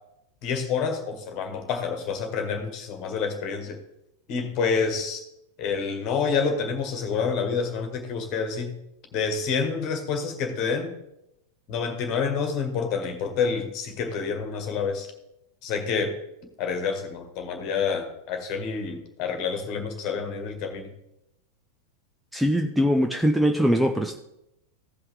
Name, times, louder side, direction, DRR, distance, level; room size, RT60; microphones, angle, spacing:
voice 1, 0.4-3.8 4.3-5.2 5.6-8.8 9.1-10.9 11.7-15.1 15.6-16.1 16.6-20.9, left 5 dB, 40° left, 6 dB, 1.8 m, -28 dB
voice 2, 22.3-24.2, equal, 5° right, 4 dB, 0.6 m, -22 dB
16.0 x 5.5 x 3.6 m, 0.85 s
figure-of-eight pair, 90°, 0 cm